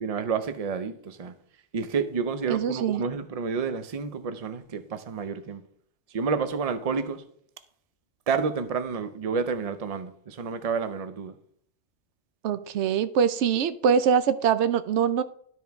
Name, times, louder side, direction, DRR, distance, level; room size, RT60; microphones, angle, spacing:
voice 1, 0.0-1.3 1.7-5.6 6.1-7.2 8.3-11.3, right 5 dB, 45° right, 0.5 m, -29 dB
voice 2, 2.5-3.0 12.4-15.2, right 7 dB, 70° right, 0.8 m, -23 dB
12.5 x 4.5 x 3.5 m
omnidirectional pair, 1.3 m